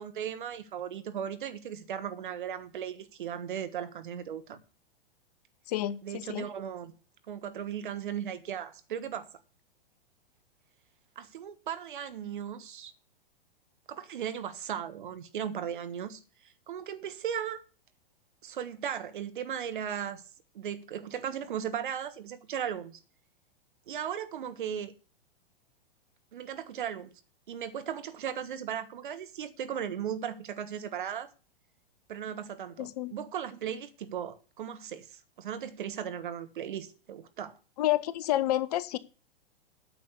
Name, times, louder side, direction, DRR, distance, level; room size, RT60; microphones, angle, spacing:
voice 1, 0.0-4.6 6.0-6.9 7.3-9.3 11.1-12.9 13.9-17.6 18.4-20.2 20.5-23.0 23.9-24.9 26.3-27.1 27.5-31.3 32.1-37.6, right 9 dB, 60° right, 1.4 m, -37 dB
voice 2, 5.7-6.5 32.8-33.1 37.8-39.0, left 14 dB, 40° left, 0.8 m, -29 dB
9.1 x 6.7 x 8.2 m
figure-of-eight pair, 105°, 29 cm